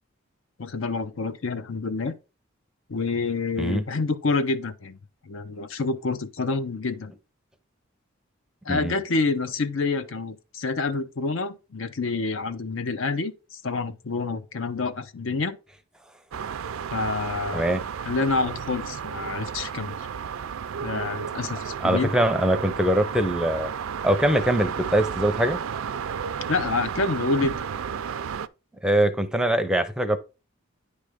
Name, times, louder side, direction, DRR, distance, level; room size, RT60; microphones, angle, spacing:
voice 1, 0.6-2.2 2.9-5.0 5.2-7.1 8.6-15.6 16.9-17.6 18.0-20.0 20.8-22.1 26.5-27.6, left 3 dB, 65° left, 0.7 m, -27 dB
sound 1, 16.3-28.5, right 7 dB, 75° right, 0.4 m, -32 dB
voice 2, 21.8-23.7 24.0-25.6 28.8-30.2, right 1 dB, 5° right, 0.6 m, -22 dB
9.8 x 3.4 x 5.0 m
head